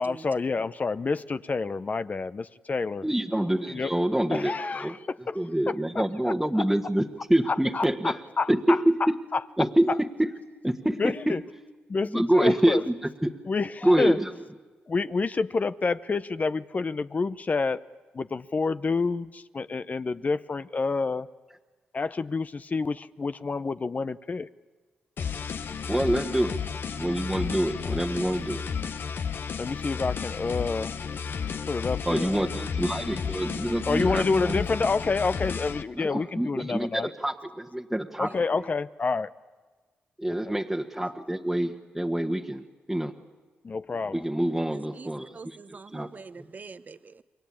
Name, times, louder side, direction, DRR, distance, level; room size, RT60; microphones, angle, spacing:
voice 1, 0.0-3.0 3.7-3.9 4.3-5.4 6.2-6.6 7.5-8.8 9.3-9.4 11.0-11.4 11.9-12.8 13.5-14.2 14.9-17.8 18.1-21.3 21.9-24.5 29.6-30.9 31.7-32.5 33.9-37.1 38.2-39.3 43.6-44.2, left 4 dB, 40° left, 0.8 m, -28 dB
voice 2, 3.0-5.0 5.3-8.2 8.5-9.2 9.6-10.3 10.6-11.3 12.0-13.3 13.8-14.3 25.9-26.6 27.0-28.6 32.0-34.7 35.9-38.6 40.2-43.1 44.1-46.1, right 1 dB, 5° right, 1.5 m, -26 dB
sound 1, 25.2-35.8, left 6 dB, 65° left, 1.1 m, -33 dB
voice 3, 44.7-47.2, right 4 dB, 45° right, 1.0 m, -45 dB
28.5 x 22.0 x 8.8 m
supercardioid pair, 55°, 4 cm